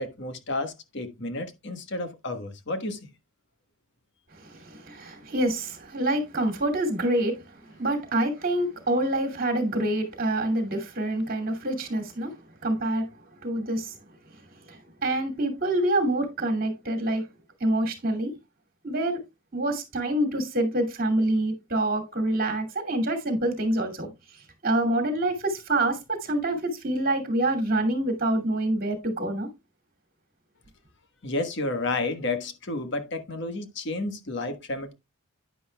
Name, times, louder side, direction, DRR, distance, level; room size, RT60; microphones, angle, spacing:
voice 1, 0.0-3.0 31.2-34.9, left 2 dB, 50° left, 1.4 m, -31 dB
voice 2, 4.5-7.3 7.8-12.3 12.6-13.1 13.4-13.9 15.0-17.2 17.6-18.3 18.8-19.2 19.5-24.1 24.6-29.5, right 1 dB, 40° right, 2.5 m, -26 dB
9.9 x 9.8 x 2.3 m
head